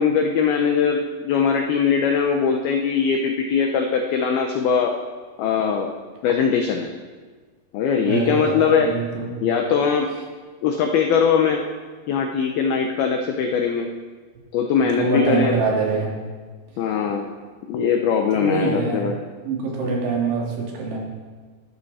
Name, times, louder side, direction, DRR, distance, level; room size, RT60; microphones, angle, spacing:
voice 1, 0.0-4.9 5.4-5.9 6.2-6.9 7.7-8.9 9.4-10.1 10.6-11.6 12.1-13.9 14.5-15.6 16.8-17.3 17.7-19.2, left 6 dB, 85° left, 3 dB, 2.1 m, -21 dB
voice 2, 8.0-9.3 14.8-16.1 18.3-19.0 19.4-21.0, right 4 dB, 70° right, -2 dB, 5.1 m, -24 dB
19.0 x 13.0 x 4.3 m, 1.5 s
omnidirectional pair, 5.6 m